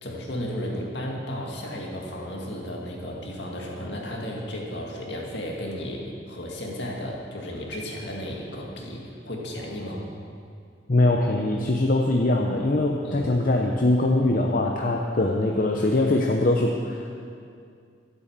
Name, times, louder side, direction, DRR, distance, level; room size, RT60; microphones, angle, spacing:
voice 1, 0.0-10.0 13.0-13.3, equal, 65° left, -1 dB, 2.2 m, -34 dB
voice 2, 10.9-17.2, left 2 dB, 45° left, 1 dB, 0.8 m, -22 dB
12.5 x 8.5 x 7.5 m, 2.4 s
head